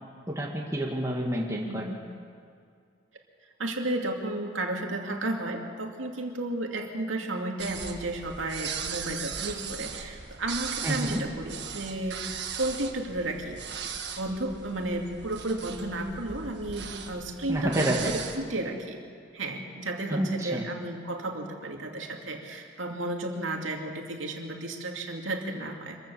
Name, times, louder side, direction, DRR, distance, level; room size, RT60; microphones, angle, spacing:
voice 1, 0.3-1.8 10.8-11.2 17.5-18.2 20.1-20.7, right 1 dB, 15° right, -2 dB, 2.1 m, -28 dB
voice 2, 1.7-2.0 3.6-13.6 14.2-17.9 18.4-19.0 19.3-26.0, right 2 dB, 85° right, 1 dB, 2.6 m, -33 dB
sound 1, 7.6-18.4, right 6 dB, 60° right, 1.7 m, -38 dB
25.5 x 15.0 x 7.1 m, 2.3 s
head